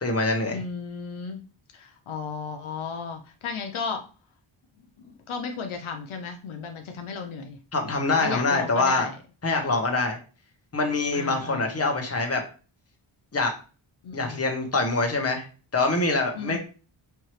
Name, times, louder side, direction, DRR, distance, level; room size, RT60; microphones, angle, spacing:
voice 1, 0.0-0.6 7.7-9.1 9.4-10.2 10.7-12.4 13.3-13.5 14.1-15.5 15.7-16.6, left 3 dB, 30° left, 2 dB, 1.1 m, -24 dB
voice 2, 0.5-1.4 1.7-4.0 5.0-7.6 8.1-9.1 11.1-11.8 14.0-14.4 16.3-16.6, left 5 dB, 75° left, 5 dB, 0.7 m, -34 dB
4.6 x 2.7 x 3.1 m, 0.35 s
wide cardioid pair, 80°, 49 cm